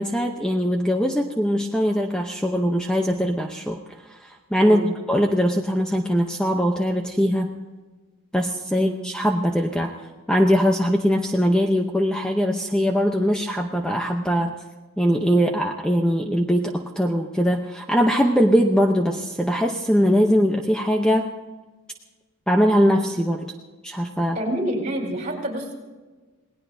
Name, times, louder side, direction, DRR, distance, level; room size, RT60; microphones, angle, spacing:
voice 1, 0.0-3.8 4.1-7.5 8.3-14.5 15.0-21.3 22.5-23.5 23.8-24.4, equal, 5° left, 2 dB, 0.8 m, -21 dB
voice 2, 4.6-5.0 8.7-8.9 24.3-25.7, right 1 dB, 35° right, 0 dB, 4.5 m, -27 dB
28.0 x 19.0 x 2.7 m, 1.3 s
head